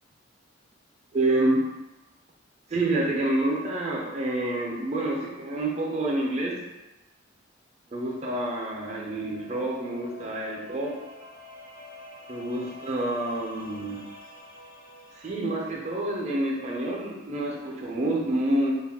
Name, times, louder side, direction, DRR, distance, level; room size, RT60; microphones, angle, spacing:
voice 1, 1.1-1.6 2.7-6.6 7.9-11.0 12.3-14.0 15.1-18.7, right 1 dB, 35° right, -1 dB, 0.4 m, -28 dB
sound 1, 9.0-15.9, left 1 dB, 50° left, 0.6 m, -48 dB
2.3 x 2.1 x 3.4 m, 1.1 s
head